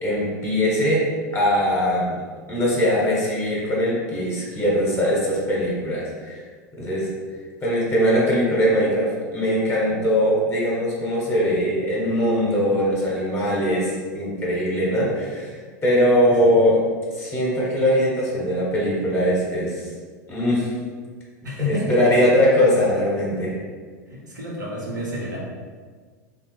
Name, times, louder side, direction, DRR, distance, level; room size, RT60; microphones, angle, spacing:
voice 1, 0.0-1.0 1.3-2.2 2.5-6.4 6.8-7.1 7.6-15.5 15.8-16.8 17.1-19.7 20.3-20.7 21.7-23.6, equal, 25° left, -5 dB, 0.9 m, -21 dB
voice 2, 21.4-22.1 24.1-25.4, left 1 dB, 85° right, -6 dB, 0.6 m, -29 dB
3.2 x 2.0 x 3.0 m, 1.5 s
figure-of-eight pair, 85°, 10 cm